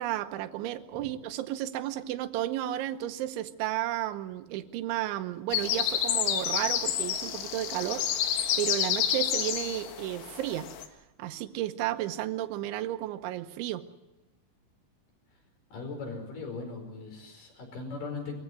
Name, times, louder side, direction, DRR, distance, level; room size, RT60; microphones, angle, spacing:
voice 1, 0.0-8.1 8.6-10.7 11.2-13.8, right 14 dB, 85° right, 10 dB, 3.3 m, -33 dB
sound 1, 5.5-10.9, left 10 dB, 90° left, 4.0 m, -29 dB
voice 2, 15.7-18.4, left 3 dB, 45° left, 4 dB, 6.4 m, -39 dB
23.5 x 15.5 x 9.4 m, 1.0 s
omnidirectional pair, 5.4 m